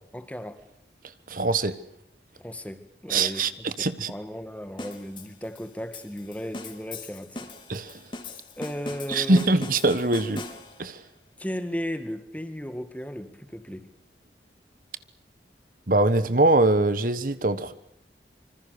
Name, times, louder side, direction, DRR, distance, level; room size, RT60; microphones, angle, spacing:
voice 1, 0.1-0.6 2.4-3.5 3.8-7.5 8.6-9.4 11.4-13.9, equal, 10° left, 2.1 m, -35 dB
voice 2, 1.3-1.7 3.1-4.1 7.7-8.0 9.1-10.4 10.8-11.0 15.9-17.7, right 2 dB, 50° right, 1.3 m, -23 dB
sound 1, 4.8-11.0, left 2 dB, 30° left, 3.2 m, -40 dB
25.5 x 25.5 x 6.8 m
head